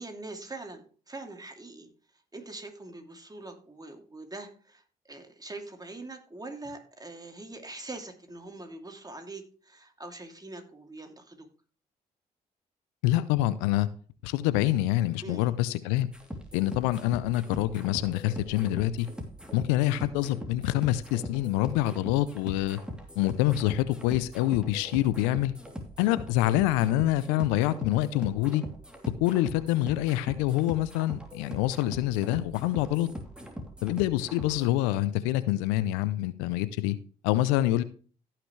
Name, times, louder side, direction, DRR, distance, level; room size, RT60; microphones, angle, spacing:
voice 1, 0.0-1.9 2.3-11.5 15.2-15.4, right 2 dB, 20° right, 4 dB, 2.7 m, -43 dB
voice 2, 13.0-13.9 14.2-16.1 16.5-19.1 19.5-22.8 23.2-25.5 26.0-28.6 29.2-33.1 33.8-37.0 37.2-37.8, left 15 dB, 85° left, 16 dB, 0.6 m, -26 dB
sound 1, 16.1-34.7, equal, 5° right, 2.9 m, -42 dB
16.5 x 6.0 x 3.2 m, 0.41 s
hypercardioid pair, 50°, 19 cm